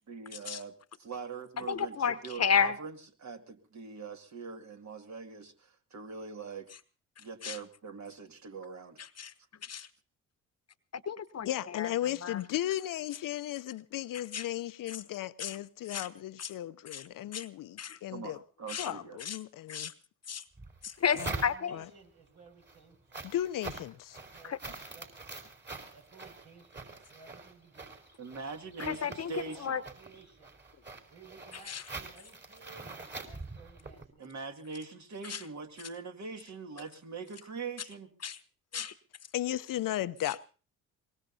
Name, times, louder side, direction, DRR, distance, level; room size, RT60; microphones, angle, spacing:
voice 1, 0.1-6.7 7.2-9.0 18.1-19.2 28.2-29.8 34.2-38.1, right 5 dB, 45° right, 2.4 m, -43 dB
voice 2, 1.7-2.8 7.4-7.6 9.0-9.3 9.6-9.9 11.1-11.5 11.7-11.9 12.2-12.4 14.3-14.5 14.9-15.0 15.4-15.6 15.9-16.1 16.4-16.5 16.9-17.0 17.3-17.5 17.8-18.0 18.7-18.9 19.2-19.4 19.7-19.9 20.3-20.4 20.8-21.8 24.4-24.6 28.8-29.8 31.7-31.8 35.2-35.4 38.2-38.4 38.7-38.9 40.3-40.4, left 7 dB, 40° left, 1.1 m, -32 dB
voice 3, 11.5-18.4 18.8-19.9 21.2-21.3 21.7-21.9 23.2-24.2 39.3-40.4, left 13 dB, 55° left, 0.7 m, -35 dB
sound 1, 20.5-22.0 22.5-34.0, right 3 dB, 30° right, 4.6 m, -44 dB
voice 4, 21.1-23.3 24.1-25.1 25.9-28.0 29.4-30.5 31.1-34.4, right 3 dB, 65° right, 6.4 m, -56 dB
23.5 x 20.5 x 2.8 m
hypercardioid pair, 50°, 38 cm